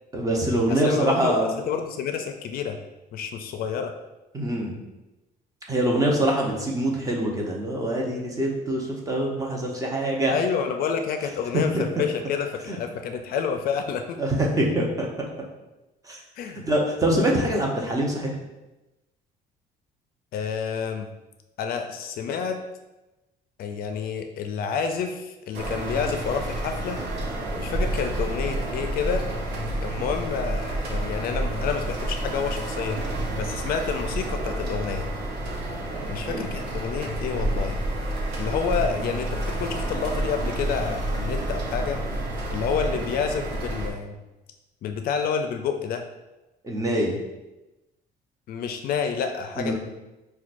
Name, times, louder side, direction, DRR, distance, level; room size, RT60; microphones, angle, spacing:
voice 1, 0.1-1.6 4.3-4.7 5.7-10.4 11.5-12.0 12.7-12.8 14.2-15.1 16.0-16.2 16.7-18.4 36.3-36.4 46.6-47.1 49.6-49.7, right 1 dB, 20° right, -1 dB, 0.8 m, -24 dB
voice 2, 0.7-2.8 3.1-3.9 10.3-14.2 16.4-16.6 20.3-21.1 21.6-22.6 23.6-27.0 27.6-29.2 29.8-33.0 33.3-35.1 36.1-37.8 38.4-42.0 42.5-44.2 44.8-46.1 48.5-49.7, left 6 dB, 60° left, 6 dB, 0.4 m, -29 dB
sound 1, 25.5-43.9, right 1 dB, 75° right, 0.8 m, -29 dB
5.7 x 2.2 x 2.5 m, 1.0 s
cardioid pair, 110°, 17 cm